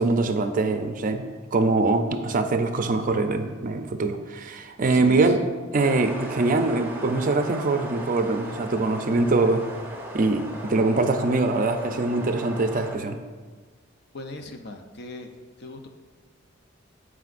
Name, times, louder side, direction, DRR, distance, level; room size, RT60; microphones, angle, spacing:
voice 1, 0.0-5.5 5.7-9.7 10.1-13.2, right 3 dB, 40° right, 7 dB, 0.5 m, -23 dB
voice 2, 4.8-5.3 14.1-15.3 15.6-15.9, left 2 dB, 55° left, 5 dB, 0.7 m, -38 dB
sound 1, 5.8-13.0, right 1 dB, 10° right, 0.8 m, -38 dB
14.0 x 4.9 x 2.6 m, 1.5 s
head